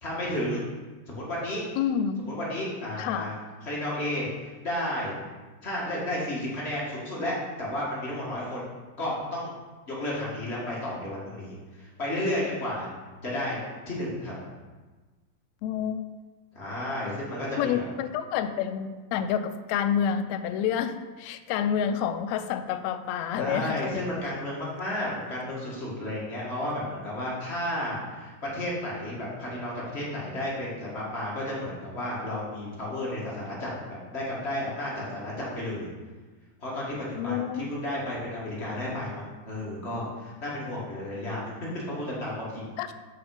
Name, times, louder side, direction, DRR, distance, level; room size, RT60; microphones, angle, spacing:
voice 1, 0.0-0.7 1.1-1.6 2.3-3.3 3.6-5.1 5.6-8.7 9.0-9.5 9.9-12.9 13.2-13.6 13.9-14.5 16.5-17.7 23.3-35.9 36.6-41.5 41.9-42.6, left 1 dB, 25° left, -5 dB, 1.6 m, -32 dB
voice 2, 1.8-2.3 3.0-3.3 15.6-16.0 17.6-24.0 37.1-37.6 42.8-42.9, left 8 dB, 85° left, 10 dB, 1.6 m, -28 dB
7.1 x 6.1 x 4.9 m, 1.3 s
omnidirectional pair, 3.6 m